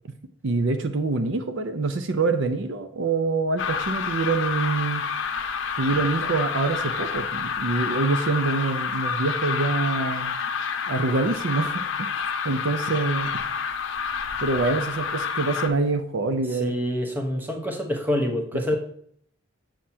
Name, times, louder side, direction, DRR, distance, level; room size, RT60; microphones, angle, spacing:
voice 1, 0.4-5.1 5.8-10.4 10.9-12.1 12.4-13.4 14.4-16.7 18.5-18.8, right 3 dB, 60° right, 8 dB, 0.5 m, -25 dB
sound 1, 3.6-15.7, left 6 dB, 60° left, 0.7 m, -28 dB
voice 2, 16.5-18.8, equal, 10° right, 2 dB, 0.9 m, -26 dB
7.5 x 7.2 x 2.8 m, 0.63 s
head